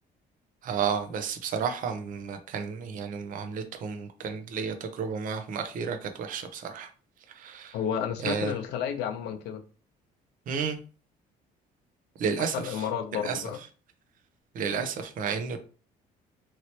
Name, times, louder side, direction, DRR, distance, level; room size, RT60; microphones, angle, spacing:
voice 1, 0.6-6.9 7.3-7.8 8.2-8.5 10.5-10.8 12.2-12.9 13.1-13.4 14.5-15.6, right 6 dB, 55° right, 0.6 m, -32 dB
voice 2, 7.7-9.6 12.5-13.6, left 8 dB, 85° left, 0.5 m, -31 dB
3.0 x 2.8 x 2.8 m
cardioid pair, 110°, 17 cm